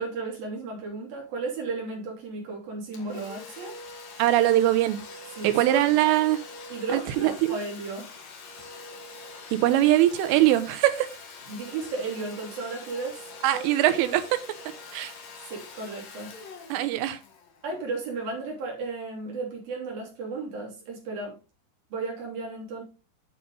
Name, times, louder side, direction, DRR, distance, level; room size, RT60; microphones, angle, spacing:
voice 1, 0.0-3.8 5.4-5.8 6.7-8.1 11.5-13.6 15.4-16.4 17.6-21.4 21.9-22.8, right 3 dB, 50° right, 4.7 m, -34 dB
Domestic sounds home sounds, 2.9-18.4, left 3 dB, 55° left, 1.9 m, -44 dB
voice 2, 4.2-5.0 5.4-6.4 6.9-7.6 9.6-11.1 13.4-14.4 14.9-15.1 16.7-17.2, right 14 dB, 90° right, 3.5 m, -22 dB
9.2 x 7.1 x 3.8 m
omnidirectional pair, 5.6 m